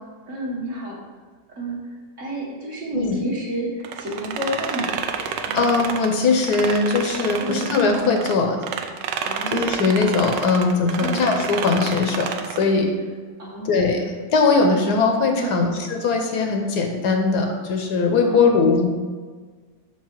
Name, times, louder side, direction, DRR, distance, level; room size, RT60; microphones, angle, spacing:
voice 1, 0.3-1.0 1.6-1.8 2.2-5.0 5.5-5.6 7.4-7.7 9.2-9.7 11.0-11.3 13.4-13.8 15.4-15.7 18.3-18.8, right 1 dB, 45° right, -4 dB, 1.5 m, -30 dB
sound 1, 3.8-8.3 8.6-12.7, right 7 dB, 80° right, 1.2 m, -29 dB
voice 2, 5.5-8.6 9.5-12.3 12.6-12.9 13.6-18.8, left 4 dB, 70° left, 3 dB, 1.2 m, -20 dB
6.5 x 4.7 x 4.5 m, 1.5 s
omnidirectional pair, 1.9 m